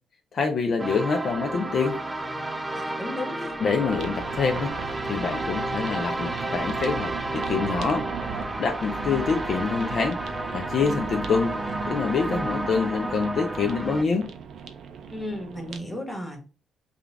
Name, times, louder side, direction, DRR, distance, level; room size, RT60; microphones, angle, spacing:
voice 1, 0.3-2.0 3.6-4.7 5.0-11.5 11.9-14.3, left 5 dB, 55° left, 4 dB, 0.5 m, -26 dB
sound 1, 0.8-14.0, right 2 dB, 10° right, 0.5 m, -31 dB
voice 2, 2.7-3.5 15.0-16.4, left 1 dB, 10° left, 1 dB, 1.3 m, -34 dB
sound 2, 3.9-15.8, right 7 dB, 70° right, 0.5 m, -38 dB
3.7 x 2.4 x 3.3 m, 0.35 s
cardioid pair, 90°, 0 cm